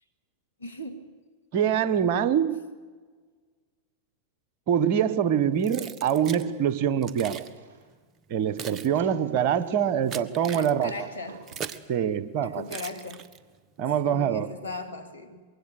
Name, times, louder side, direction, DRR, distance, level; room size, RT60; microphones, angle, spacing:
voice 1, 0.6-1.1 1.7-1.8 10.5-11.4 12.4-13.2 14.0-15.4, left 3 dB, 80° left, 5 dB, 3.1 m, -38 dB
voice 2, 1.5-2.6 4.7-7.4 8.3-10.9 11.9-12.6 13.8-14.5, right 8 dB, 45° right, 15 dB, 1.4 m, -24 dB
Keys jangling, 5.6-6.5 7.0-7.5 8.2-11.9 12.7-13.6, right 7 dB, 30° right, 1.5 m, -40 dB
sound 1, 7.2-8.0 8.9-9.9 10.8-11.7, right 7 dB, 60° right, 5.8 m, -51 dB
24.5 x 23.0 x 8.5 m, 1.4 s
figure-of-eight pair, 90°, 0 cm